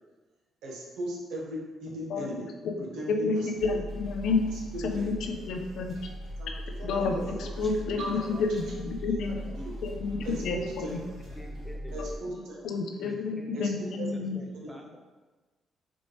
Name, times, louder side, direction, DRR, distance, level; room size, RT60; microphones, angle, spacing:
voice 1, 0.6-2.5 2.8-3.8 4.7-5.1 6.4-6.5 6.8-7.2 7.6-7.7 8.0-8.4 9.0-9.8 10.2-11.0 11.9-12.7 13.5-13.7 14.0-14.1 14.6-14.8, right 1 dB, 85° right, -2 dB, 1.0 m, -38 dB
voice 2, 3.1-4.4 4.8-6.0 6.8-9.4 9.8-11.0 12.6-14.4, left 4 dB, 80° left, 4 dB, 0.5 m, -30 dB
sound 1, 3.5-12.2, equal, 55° right, 1.3 m, -40 dB
voice 3, 8.0-8.5 10.0-11.0 11.3-12.1 13.0-15.0, equal, 5° right, 0 dB, 0.7 m, -48 dB
4.1 x 3.2 x 3.0 m, 1.3 s
cardioid pair, 90°, 0 cm